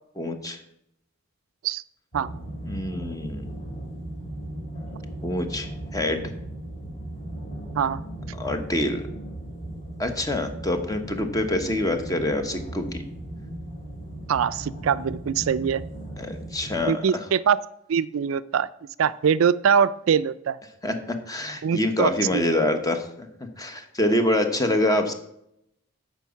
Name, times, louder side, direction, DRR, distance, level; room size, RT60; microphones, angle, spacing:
voice 1, 0.2-0.6 2.7-3.5 5.2-6.3 8.3-9.0 10.0-13.0 16.2-17.2 20.8-20.9 21.3-23.3 23.6-25.1, left 1 dB, 20° left, 7 dB, 1.1 m, -26 dB
sound 1, 2.1-16.8, right 1 dB, 35° left, 4.6 m, -37 dB
voice 2, 14.3-15.8 16.9-17.6 17.9-18.7 19.0-20.6 21.6-22.4, right 7 dB, 80° right, 15 dB, 0.4 m, -23 dB
9.0 x 5.3 x 7.0 m, 0.77 s
head